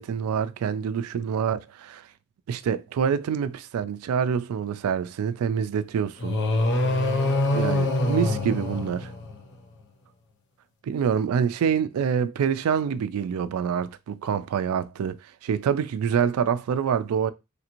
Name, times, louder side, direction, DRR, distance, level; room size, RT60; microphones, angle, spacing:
voice 1, 0.0-2.0 2.5-6.4 7.5-9.1 10.8-17.3, right 7 dB, 75° right, 0.3 m, -26 dB
sound 1, 6.2-9.5, left 2 dB, 55° left, 0.6 m, -24 dB
3.2 x 2.9 x 2.5 m
head